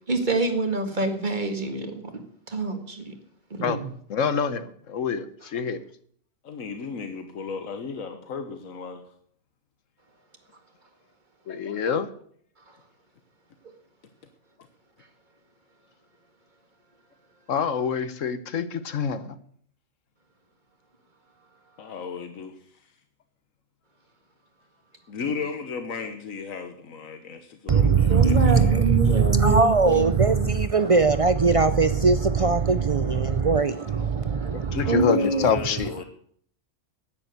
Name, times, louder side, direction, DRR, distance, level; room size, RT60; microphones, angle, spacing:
voice 1, 0.1-2.2 2.5-3.1 3.5-3.8 28.1-30.5 34.3-35.5, right 3 dB, 35° right, 1.9 m, -26 dB
voice 2, 3.6-5.8 11.5-12.1 17.5-19.4 34.7-35.9, left 6 dB, 70° left, 1.3 m, -26 dB
voice 3, 6.4-9.0 21.8-22.8 25.1-28.7 34.8-36.0, left 5 dB, 90° left, 1.5 m, -35 dB
voice 4, 27.7-35.0 35.4-35.5 35.8-36.0, right 5 dB, 55° right, 0.3 m, -21 dB
10.5 x 9.6 x 8.1 m
omnidirectional pair, 1.4 m